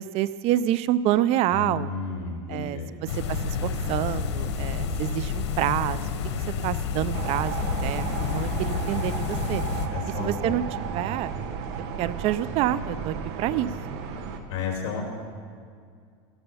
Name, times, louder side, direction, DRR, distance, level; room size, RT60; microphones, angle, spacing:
voice 1, 0.0-1.9 2.5-6.1 6.6-9.6 10.2-11.4 12.0-14.0, right 12 dB, 45° right, 16 dB, 0.4 m, -27 dB
voice 2, 1.5-2.9 9.9-10.5 14.5-15.0, left 5 dB, 50° left, 0 dB, 4.5 m, -32 dB
sound 1, 3.1-9.9, left 5 dB, 75° left, 1.4 m, -29 dB
sound 2, 7.1-14.4, right 6 dB, 65° right, 1.4 m, -34 dB
15.5 x 11.0 x 5.6 m, 2.1 s
supercardioid pair, 135°, 15 cm